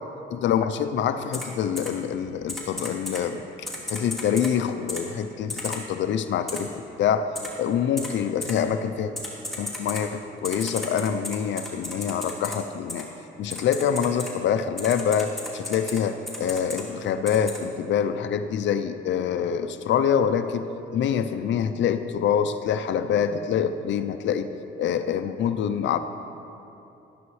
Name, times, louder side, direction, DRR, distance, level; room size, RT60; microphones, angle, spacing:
voice 1, 0.3-7.3 7.6-9.1 9.6-13.1 13.4-20.7 20.9-24.5 24.8-26.0, left 8 dB, 70° left, 10 dB, 0.5 m, -25 dB
Typing, 1.3-1.4 1.8-1.9 2.5-3.2 3.7-4.5 4.9-5.0 5.5-5.8 6.5-6.6 7.4-7.5 8.0-8.1 8.4-8.5 9.2-10.0 10.4-12.5 12.9-13.0 13.5-14.3 14.8-16.0 16.3-16.8 17.3-17.6, left 1 dB, ahead, 2.5 m, -33 dB
12.0 x 11.0 x 3.2 m, 2.9 s
cardioid pair, 90°, 20 cm